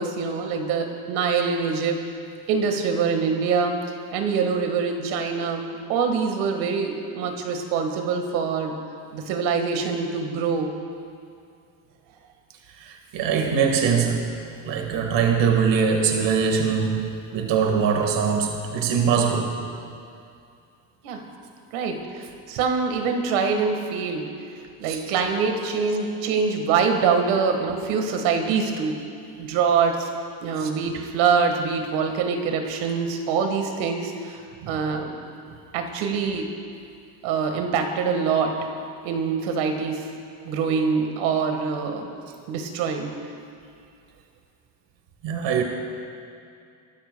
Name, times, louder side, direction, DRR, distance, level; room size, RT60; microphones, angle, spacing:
voice 1, 0.0-2.1 2.5-3.8 4.1-8.8 9.1-10.7 21.0-21.2 21.7-24.4 24.8-29.0 29.4-30.1 30.4-34.4 34.7-35.2 35.7-36.5 37.2-38.6 39.0-40.1 40.4-42.1 42.5-43.1, right 5 dB, 85° right, 5 dB, 1.7 m, -24 dB
voice 2, 12.8-14.3 14.6-19.6 24.9-25.0 30.6-30.7 34.6-34.8 45.2-45.6, right 6 dB, 65° right, 3 dB, 1.7 m, -22 dB
28.0 x 13.0 x 2.2 m, 2.4 s
supercardioid pair, 75°, 47 cm